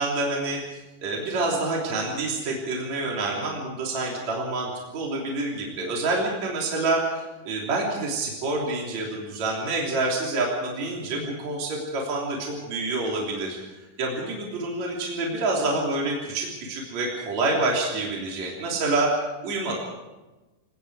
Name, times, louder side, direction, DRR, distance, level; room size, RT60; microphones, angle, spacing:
voice 1, 0.0-13.6 14.0-19.7, right 2 dB, 50° right, -2 dB, 4.3 m, -27 dB
28.5 x 18.5 x 4.8 m, 1.1 s
omnidirectional pair, 4.3 m